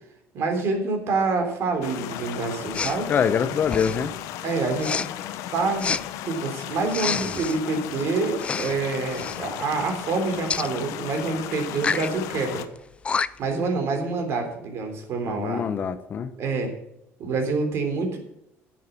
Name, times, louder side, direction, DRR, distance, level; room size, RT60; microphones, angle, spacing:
voice 1, 0.3-3.1 4.4-5.0 5.5-12.6 13.4-15.7 16.4-16.7 17.2-18.2, right 3 dB, 55° right, 4 dB, 3.6 m, -27 dB
sound 1, 1.8-12.7, left 12 dB, 80° left, 1.0 m, -35 dB
Respiratory sounds, 2.7-3.0 3.6-4.1 4.8-5.1 5.8-6.0 6.9-7.6 8.4-8.8 9.1-9.4 10.5-10.7 11.7-12.1 12.8-12.9 13.0-13.5, left 5 dB, 20° left, 0.4 m, -28 dB
voice 2, 3.1-4.1 15.3-16.3, left 7 dB, 40° left, 11 dB, 0.9 m, -24 dB
10.5 x 7.5 x 8.3 m, 0.80 s
cardioid pair, 140°, 5 cm